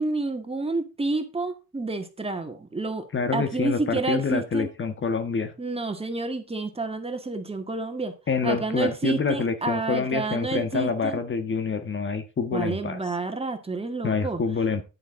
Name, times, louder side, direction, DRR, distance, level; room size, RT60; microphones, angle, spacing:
voice 1, 0.0-3.1 3.3-4.7 5.6-8.1 8.4-11.2 12.5-14.4, right 3 dB, 20° right, 6 dB, 1.9 m, -29 dB
voice 2, 3.1-5.5 8.3-13.0 14.0-14.8, left 5 dB, 40° left, 8 dB, 1.5 m, -27 dB
10.0 x 8.3 x 3.9 m, 0.29 s
cardioid pair, 90°, 30 cm